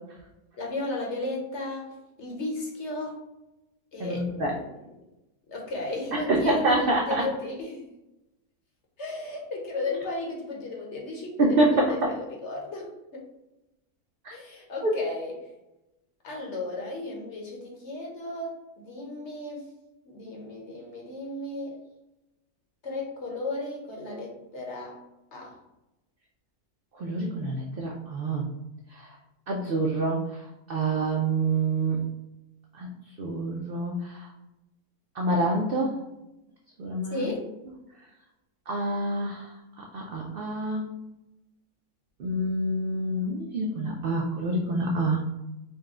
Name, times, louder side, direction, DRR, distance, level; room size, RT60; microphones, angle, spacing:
voice 1, 0.6-3.2 3.9-4.9 5.5-7.9 9.0-13.2 14.3-15.4 16.2-19.6 20.0-21.8 22.8-25.0 25.3-25.6 37.1-37.4, left 2 dB, 55° left, -1 dB, 1.1 m, -35 dB
voice 2, 4.0-4.5 6.3-7.3 11.4-12.1 14.2-14.3 14.8-14.9 27.0-28.4 28.9-29.1 29.5-30.2 30.7-32.0 32.7-32.9 33.2-34.3 35.2-36.0 36.8-37.3 38.7-39.5 39.9-40.9 42.2-45.2, right 2 dB, 80° right, -1 dB, 0.5 m, -26 dB
4.1 x 2.2 x 3.6 m, 0.94 s
omnidirectional pair, 1.6 m